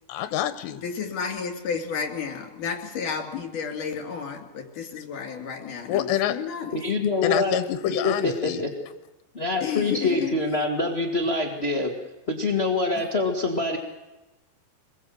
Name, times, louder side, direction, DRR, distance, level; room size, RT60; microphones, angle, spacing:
voice 1, 0.1-0.8 5.9-6.4 7.2-8.6, left 10 dB, 85° left, 10 dB, 3.1 m, -26 dB
voice 2, 0.8-6.7 9.6-10.3, left 6 dB, 55° left, 2 dB, 4.5 m, -32 dB
voice 3, 6.7-7.5 8.0-8.7 9.3-11.9 12.3-13.8, left 3 dB, 35° left, 1 dB, 1.0 m, -25 dB
26.0 x 21.5 x 7.7 m, 1.1 s
omnidirectional pair, 4.8 m